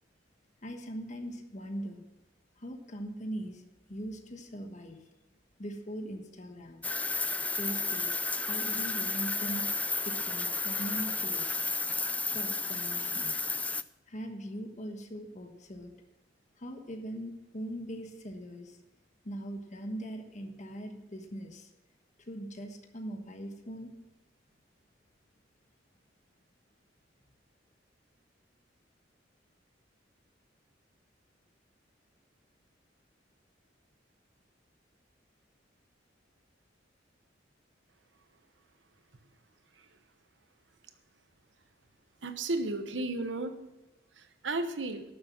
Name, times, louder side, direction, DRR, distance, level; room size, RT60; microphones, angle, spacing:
voice 1, 0.6-2.0 2.6-3.6 3.9-5.0 5.6-6.9 7.6-8.1 8.5-9.7 10.0-11.6 12.3-13.4 14.1-16.0 16.6-18.8 19.2-21.7 22.3-23.9, equal, 40° left, 4 dB, 1.3 m, -40 dB
sound 1, 6.8-13.8, left 3 dB, 10° left, 0.3 m, -32 dB
voice 2, 42.2-43.6 44.1-45.0, right 2 dB, 75° right, 8 dB, 1.1 m, -34 dB
12.0 x 7.0 x 6.0 m, 0.96 s
head